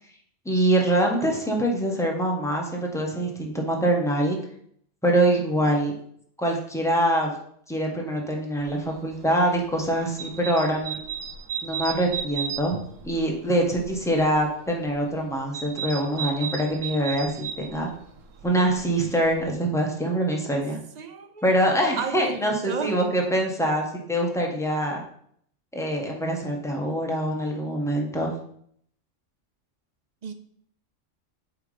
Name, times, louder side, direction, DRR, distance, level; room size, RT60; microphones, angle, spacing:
voice 1, 0.4-4.4 5.0-5.9 6.4-7.3 7.7-11.0 11.6-12.8 13.0-17.9 18.4-20.8 21.4-25.0 25.7-28.3, right 1 dB, ahead, 0 dB, 1.2 m, -24 dB
sound 1, 8.6-19.5, right 7 dB, 85° right, 1.2 m, -36 dB
voice 2, 20.9-21.4 22.0-23.0 30.2-30.3, right 6 dB, 50° right, 8 dB, 0.5 m, -33 dB
8.0 x 3.7 x 4.9 m, 0.66 s
omnidirectional pair, 1.3 m